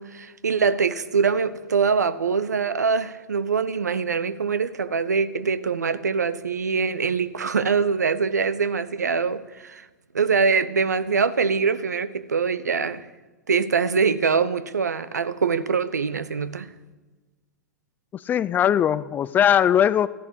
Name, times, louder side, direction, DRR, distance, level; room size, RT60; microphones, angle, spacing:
voice 1, 0.0-9.8 10.1-13.1 13.5-16.7, right 5 dB, 75° right, 0.9 m, -23 dB
voice 2, 18.1-20.1, left 9 dB, 20° left, 0.4 m, -20 dB
14.0 x 11.5 x 8.3 m
figure-of-eight pair, 105°, 9 cm